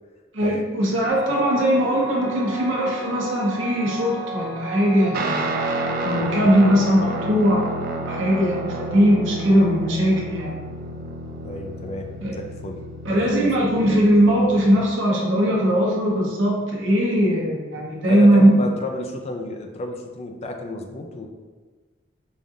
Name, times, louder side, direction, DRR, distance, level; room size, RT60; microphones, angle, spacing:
voice 1, 0.3-5.5 6.0-7.6 8.1-10.5 12.2-12.3 13.0-18.5, equal, 80° right, -3 dB, 0.9 m, -19 dB
sound 1, 1.1-8.6, right 2 dB, 35° right, 1.3 m, -35 dB
Guitar, 5.1-14.9, right 1 dB, 50° right, 0.4 m, -30 dB
voice 2, 11.4-13.2 18.1-21.3, left 1 dB, 35° left, 4 dB, 0.4 m, -32 dB
5.1 x 2.4 x 2.6 m, 1.4 s
head